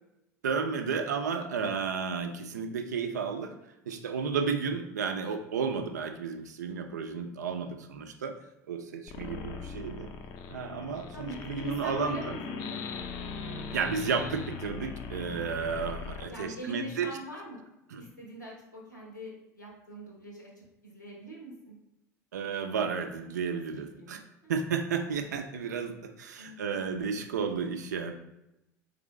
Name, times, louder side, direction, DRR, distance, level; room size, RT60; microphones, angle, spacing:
voice 1, 0.4-3.5 3.9-8.3 8.7-10.1 10.5-12.4 13.7-17.1 17.9-18.0 22.3-24.2 24.5-28.1, right 5 dB, 70° right, 6 dB, 0.5 m, -32 dB
sound 1, 9.1-16.3, left 5 dB, 45° left, 0.5 m, -40 dB
voice 2, 11.1-12.8 16.3-17.6 18.0-21.7 23.6-24.5 25.2-25.4 26.4-26.9, right 1 dB, 90° left, -2 dB, 1.0 m, -43 dB
3.9 x 3.3 x 3.1 m, 0.90 s
figure-of-eight pair, 70°, 9 cm